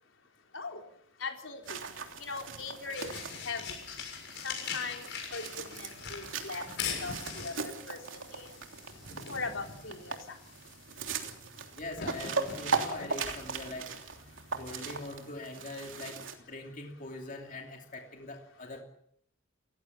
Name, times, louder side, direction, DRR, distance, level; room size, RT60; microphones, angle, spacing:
voice 1, 1.2-1.8 2.2-3.1 3.4-3.8 4.4-5.0 5.3-8.5 9.3-10.4, left 4 dB, 80° left, 3 dB, 4.2 m, -40 dB
sound 1, 1.6-15.2, left 6 dB, 65° left, 7.1 m, -43 dB
sound 2, 1.7-16.4, right 5 dB, 80° right, 3.1 m, -39 dB
voice 2, 11.8-13.9 14.5-18.8, left 2 dB, 45° left, 2 dB, 2.8 m, -42 dB
29.5 x 16.0 x 7.2 m, 0.70 s
head